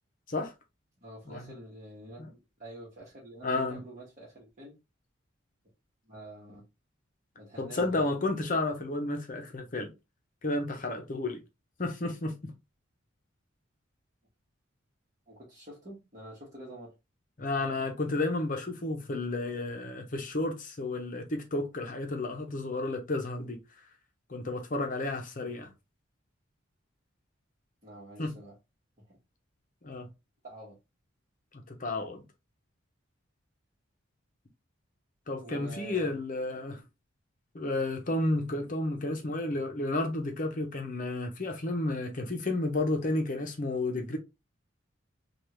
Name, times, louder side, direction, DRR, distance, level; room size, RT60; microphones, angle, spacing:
voice 1, 1.0-4.7 6.0-6.6 7.4-8.0 15.3-16.9 25.5-25.7 27.8-28.5 29.1-29.2 30.4-30.8 35.4-36.2, right 1 dB, 35° right, 1.2 m, -47 dB
voice 2, 3.4-3.8 7.6-9.9 10.4-11.4 11.8-12.5 17.4-23.6 24.3-25.7 28.2-28.3 29.8-30.1 31.5-32.2 35.3-36.8 37.5-44.2, left 2 dB, 40° left, 0.8 m, -32 dB
3.5 x 2.4 x 3.0 m
head